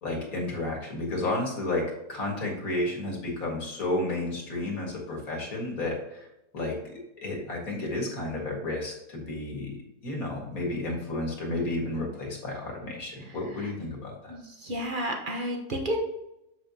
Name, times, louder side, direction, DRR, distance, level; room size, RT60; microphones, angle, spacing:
voice 1, 0.0-6.3 6.5-6.8 7.2-9.8 10.0-14.3, left 2 dB, 60° left, 0 dB, 2.2 m, -32 dB
voice 2, 14.3-16.0, equal, 35° right, 1 dB, 1.1 m, -31 dB
7.2 x 6.6 x 2.8 m, 0.88 s
omnidirectional pair, 1.7 m